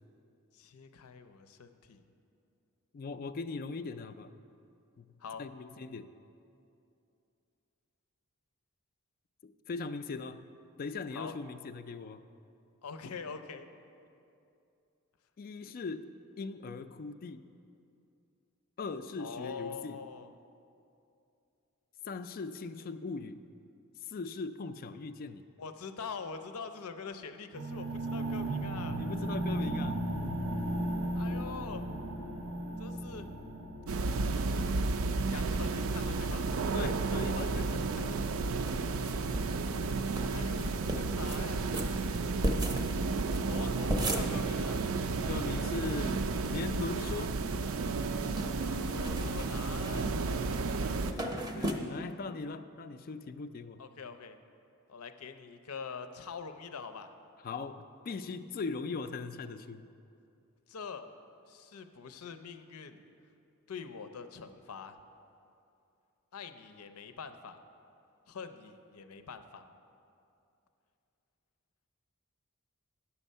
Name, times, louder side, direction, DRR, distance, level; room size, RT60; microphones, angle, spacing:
voice 1, 0.5-2.0 5.2-5.5 11.1-11.4 12.8-13.7 19.2-20.3 25.6-29.0 31.1-31.9 32.8-33.3 35.3-36.5 40.2-42.1 43.5-44.8 48.6-50.1 53.8-54.4 54.9-57.1 60.7-61.1 61.5-63.0 63.7-65.0 66.3-67.6 68.3-69.7, left 5 dB, 85° left, 9 dB, 0.6 m, -44 dB
voice 2, 2.9-4.3 5.0-5.1 5.4-6.1 9.4-10.4 10.8-12.2 15.4-17.5 18.8-20.0 22.0-23.4 24.0-25.4 28.9-30.0 36.7-38.2 45.3-47.3 51.1-53.8 57.4-59.9, left 4 dB, 40° left, 10 dB, 0.3 m, -40 dB
sound 1, 27.5-37.5, right 1 dB, 90° right, 1.2 m, -36 dB
sound 2, 33.9-51.1, right 3 dB, 65° right, 0.4 m, -32 dB
sound 3, 38.7-39.6 39.8-39.9 40.1-40.3 40.6-41.4 41.7-45.2 45.5-45.6 45.8-46.5 46.9-47.5 47.8-51.7, right 1 dB, 15° right, 0.6 m, -36 dB
10.0 x 7.0 x 5.4 m, 2.6 s
head